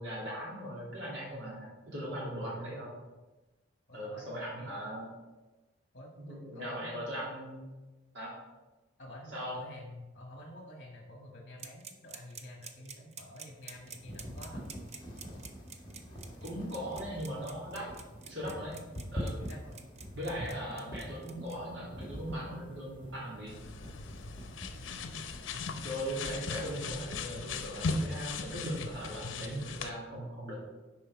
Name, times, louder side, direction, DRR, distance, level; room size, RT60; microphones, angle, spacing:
voice 1, 0.0-2.9 3.9-5.1 6.2-7.7 8.1-8.3 9.3-9.6 16.4-17.9 18.3-18.8 19.1-19.4 20.1-23.5 25.7-30.5, equal, 65° right, -6 dB, 2.3 m, -39 dB
voice 2, 2.4-2.8 3.9-4.8 5.9-7.2 9.0-14.7 18.5-18.8 19.4-19.8 24.8-24.9 25.5-25.8, left 1 dB, 45° left, 1 dB, 1.4 m, -50 dB
sound 1, 11.6-21.6, right 6 dB, 35° right, 0.6 m, -48 dB
sound 2, 13.5-26.8, equal, 25° left, 1.7 m, -45 dB
sound 3, 23.5-29.9, left 3 dB, 80° left, 0.7 m, -38 dB
10.5 x 4.4 x 4.6 m, 1.1 s
head